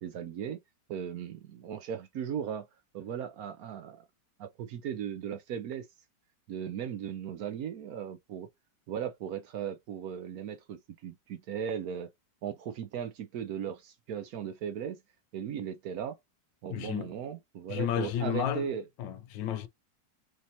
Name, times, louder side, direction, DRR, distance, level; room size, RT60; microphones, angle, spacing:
voice 1, 0.0-0.6 0.9-2.7 2.9-4.1 4.4-5.9 6.5-8.5 8.9-12.1 12.4-15.0 15.3-16.2 16.6-18.8, right 8 dB, 65° right, 1.0 m, -37 dB
voice 2, 16.7-17.1 17.7-18.7 19.0-19.7, left 10 dB, 85° left, 1.3 m, -32 dB
6.3 x 2.8 x 2.7 m
omnidirectional pair, 1.9 m